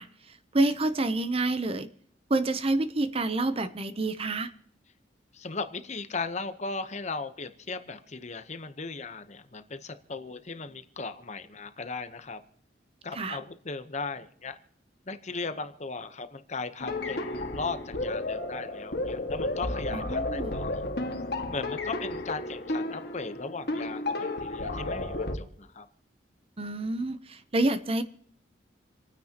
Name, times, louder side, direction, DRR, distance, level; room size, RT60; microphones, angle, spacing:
voice 1, 0.0-1.9 2.3-4.5 13.1-13.4 19.9-20.5 26.6-28.0, right 2 dB, 30° right, 12 dB, 0.7 m, -28 dB
voice 2, 5.3-12.4 13.0-14.6 15.1-20.7 21.5-25.9, left 4 dB, 40° left, 10 dB, 0.9 m, -37 dB
sound 1, 16.8-25.4, left 2 dB, 60° left, 1.7 m, -32 dB
28.5 x 9.6 x 2.9 m, 0.66 s
head